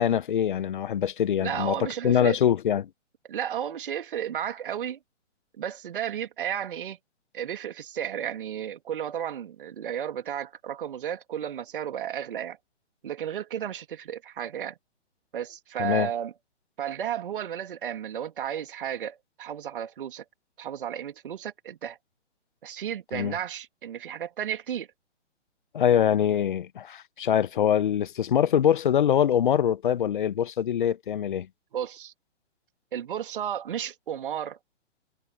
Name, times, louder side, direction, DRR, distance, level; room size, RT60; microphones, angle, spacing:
voice 1, 0.0-1.8 2.0-2.9 15.8-16.1 23.1-23.3 25.7-31.5, left 9 dB, 45° left, 1.1 m, -23 dB
voice 2, 1.4-2.4 3.3-5.0 5.6-7.0 7.3-12.6 13.0-14.8 15.3-16.3 16.8-20.2 20.6-22.0 22.6-24.9 31.7-32.1 32.9-34.6, right 9 dB, 45° right, 1.9 m, -33 dB
figure-of-eight pair, 130°, 36 cm